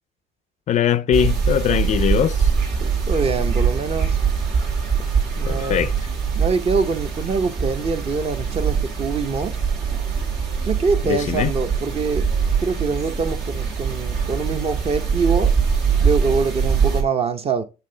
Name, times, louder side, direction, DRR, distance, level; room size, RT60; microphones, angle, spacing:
voice 1, 0.7-2.5 5.5-5.9 11.1-11.5, left 9 dB, 45° left, 0.4 m, -21 dB
sound 1, 1.1-17.0, right 6 dB, 75° right, 1.9 m, -23 dB
voice 2, 3.1-4.2 5.4-5.9 6.4-9.6 10.7-12.3 12.6-15.5 16.0-17.6, right 4 dB, 35° right, 0.7 m, -24 dB
7.4 x 3.4 x 3.8 m
cardioid pair, 110°, 17 cm